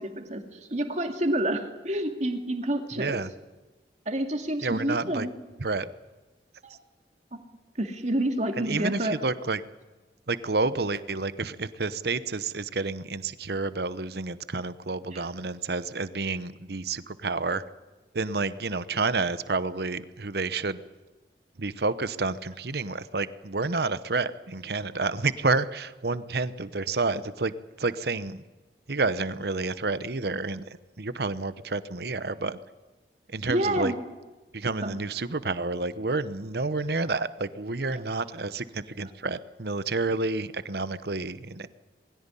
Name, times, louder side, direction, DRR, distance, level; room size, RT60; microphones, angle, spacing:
voice 1, 0.0-3.2 4.1-5.3 6.6-6.8 7.8-9.1 15.1-15.3 33.5-34.0 34.8-34.9 37.9-38.0, right 1 dB, 40° right, 5 dB, 2.5 m, -28 dB
voice 2, 3.0-3.3 4.6-5.3 5.6-5.9 8.6-9.6 10.3-17.6 18.1-20.8 21.6-28.4 28.9-30.6 31.0-32.6 33.3-33.9 34.5-41.7, right 3 dB, 60° right, 14 dB, 1.0 m, -29 dB
21.5 x 16.5 x 9.9 m, 1.2 s
head